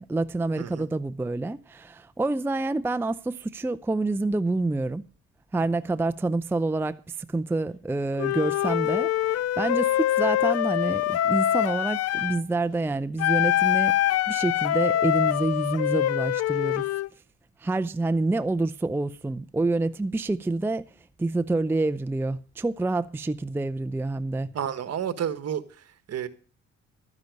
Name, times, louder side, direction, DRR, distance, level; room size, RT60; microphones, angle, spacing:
voice 1, 0.0-5.0 5.5-16.8 17.6-20.9 21.2-24.5, right 2 dB, 10° right, 0.4 m, -27 dB
voice 2, 0.6-0.9 24.5-26.3, right 9 dB, 55° right, 1.4 m, -31 dB
Wind instrument woodwind instrument, 8.2-12.4 13.2-17.1, left 12 dB, 55° left, 0.5 m, -24 dB
12.0 x 9.8 x 5.3 m
cardioid pair, 90°, 30 cm